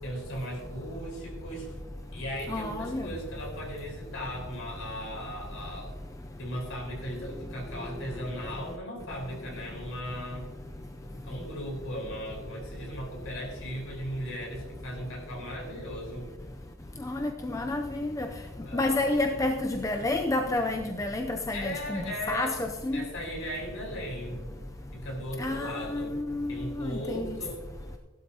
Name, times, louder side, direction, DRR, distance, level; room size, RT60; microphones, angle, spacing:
voice 1, 0.0-1.7 2.1-5.9 6.4-10.5 11.2-16.3 18.7-19.1 21.5-22.6 22.9-24.4 24.9-26.1 26.5-27.6, equal, 65° left, 4.4 m, -37 dB
voice 2, 2.5-3.1 17.0-18.3 18.7-23.0 25.4-27.4, left 2 dB, 15° left, 0.5 m, -30 dB
16.0 x 12.0 x 2.8 m
head